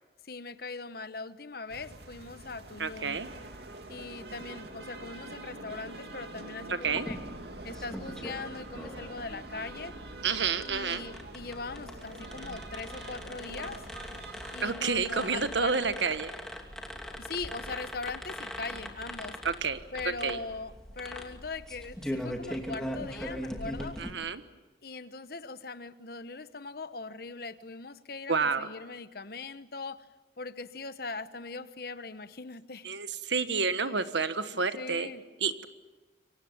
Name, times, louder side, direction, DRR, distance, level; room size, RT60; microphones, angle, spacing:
voice 1, 0.2-3.2 3.9-7.2 7.6-9.9 10.6-13.8 14.5-15.8 17.2-19.4 19.9-24.0 24.8-30.1 30.4-32.9 34.8-35.2, left 3 dB, 55° left, 13 dB, 1.1 m, -40 dB
sound 1, 1.7-14.6, right 2 dB, 60° right, 2.7 m, -45 dB
voice 2, 2.8-3.3 6.7-7.1 10.2-11.0 14.6-16.3 19.4-19.8 20.2-20.4 24.0-24.4 28.3-28.7 32.8-35.1 35.4-35.6, right 5 dB, 75° right, 11 dB, 1.4 m, -29 dB
sound 2, 6.8-24.1, equal, 5° left, 2.7 m, -41 dB
27.5 x 24.0 x 7.3 m, 1.2 s
head